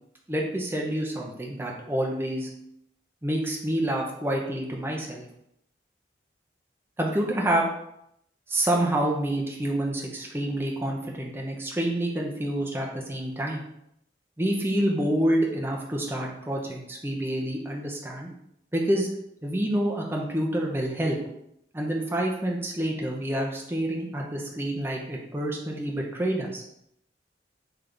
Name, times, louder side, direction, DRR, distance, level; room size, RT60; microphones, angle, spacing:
voice 1, 0.3-2.5 3.2-5.2 7.0-7.7 8.5-13.6 14.4-18.3 18.7-19.1 19.4-21.2 21.7-26.6, right 1 dB, 15° right, -1 dB, 0.6 m, -28 dB
3.3 x 3.3 x 3.8 m, 0.77 s
head